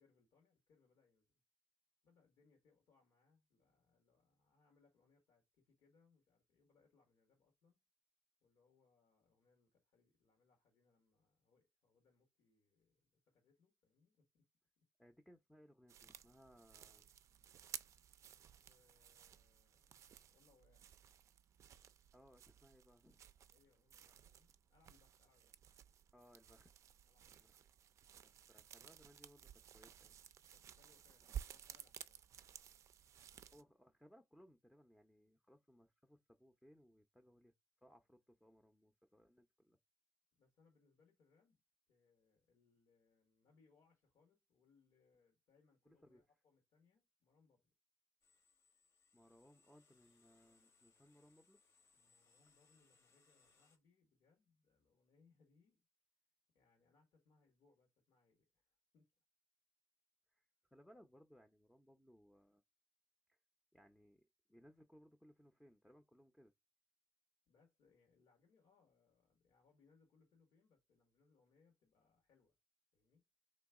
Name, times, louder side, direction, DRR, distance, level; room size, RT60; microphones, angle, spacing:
voice 1, 0.0-1.3 2.0-7.8 8.4-14.4 18.7-19.9 20.3-20.8 23.5-25.5 27.0-27.5 28.1-28.5 30.5-32.2 33.4-33.7 40.3-41.6 41.9-47.7 51.9-55.8 56.5-59.1 67.5-72.5 72.9-73.3, left 4 dB, 85° left, 1.6 m, -75 dB
voice 2, 15.0-17.1 22.1-23.3 26.1-26.7 27.3-27.6 28.5-30.2 33.5-37.5 37.8-39.8 45.9-46.2 49.1-51.6 60.3-62.6 63.3-63.4 63.7-66.5, equal, 5° left, 0.6 m, -66 dB
sound 1, 15.9-33.6, right 9 dB, 65° right, 0.4 m, -56 dB
sound 2, 48.2-53.8, left 4 dB, 60° left, 1.2 m, -74 dB
3.4 x 3.1 x 4.7 m
cardioid pair, 90°, 6 cm